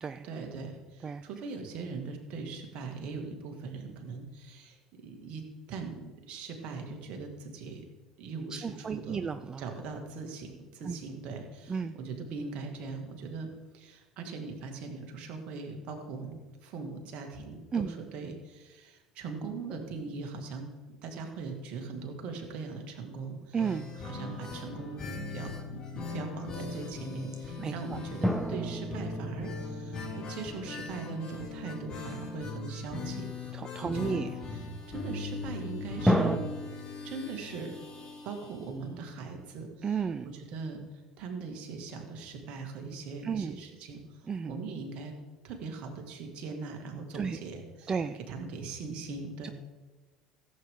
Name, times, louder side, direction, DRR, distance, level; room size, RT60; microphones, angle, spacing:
voice 1, 0.2-5.4 5.7-7.8 8.2-9.2 9.6-13.5 13.7-20.7 21.0-25.0 25.3-34.2 34.5-36.4 37.0-37.7 38.2-40.8 41.2-45.1 45.4-49.5, right 4 dB, 55° right, 4 dB, 2.2 m, -40 dB
voice 2, 8.6-9.6 10.8-11.0 11.7-12.0 17.7-17.9 23.5-23.9 27.6-28.0 33.5-34.3 39.8-40.3 43.2-43.6 44.3-44.5 47.1-47.4 47.9-48.2 49.4-49.5, right 6 dB, 30° right, 11 dB, 0.5 m, -33 dB
sound 1, 23.6-39.2 39.5-39.6 39.9-40.0, left 3 dB, 40° left, 3.6 m, -40 dB
sound 2, 28.2-31.2 36.1-36.4, equal, ahead, 1.0 m, -30 dB
16.0 x 8.1 x 3.8 m, 1.3 s
figure-of-eight pair, 65°, 2 cm